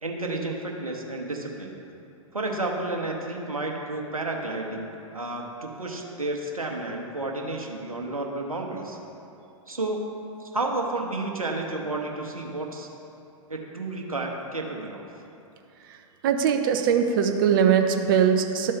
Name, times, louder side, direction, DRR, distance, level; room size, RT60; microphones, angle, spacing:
voice 1, 0.0-1.7 2.3-9.0 9.7-10.1 10.4-12.9 13.5-15.1, right 2 dB, 80° right, 1 dB, 1.0 m, -31 dB
voice 2, 16.2-18.7, right 7 dB, 40° right, 5 dB, 0.6 m, -21 dB
12.0 x 4.2 x 3.7 m, 2.8 s
figure-of-eight pair, 110°, 18 cm